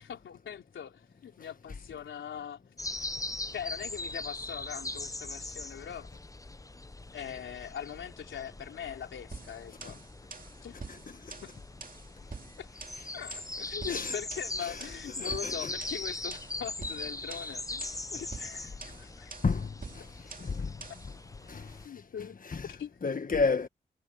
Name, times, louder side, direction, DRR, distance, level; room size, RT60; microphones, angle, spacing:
voice 1, 0.0-2.7 3.5-6.1 7.1-10.0 10.6-10.8 11.4-11.5 12.6-12.7 13.1-17.8 18.1-19.4 21.8-22.4 22.7-22.9, left 8 dB, 90° left, 3.7 m, -41 dB
sound 1, 2.8-21.9, left 2 dB, 15° left, 0.8 m, -41 dB
sound 2, 9.3-21.1, right 4 dB, 45° right, 2.7 m, -47 dB
voice 2, 13.9-14.2 14.6-14.9 15.2-15.7 19.4-20.1 20.4-20.7 21.5-21.8 22.2-22.8 23.0-23.7, left 4 dB, 45° left, 1.4 m, -32 dB
cardioid pair, 45°, 19 cm